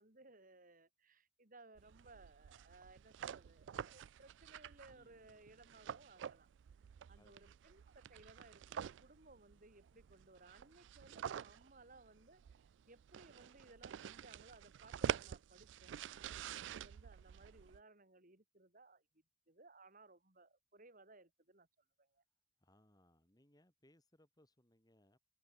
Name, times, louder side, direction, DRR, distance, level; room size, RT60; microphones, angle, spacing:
voice 1, 0.0-6.5 7.1-12.4 12.9-19.0 19.5-21.7 22.0-22.2, right 2 dB, 45° right, 5.3 m, -62 dB
sound 1, 1.8-17.8, right 8 dB, 70° right, 0.3 m, -47 dB
voice 2, 4.9-5.5 7.1-7.6 22.6-25.2, left 1 dB, 20° left, 5.4 m, -71 dB
head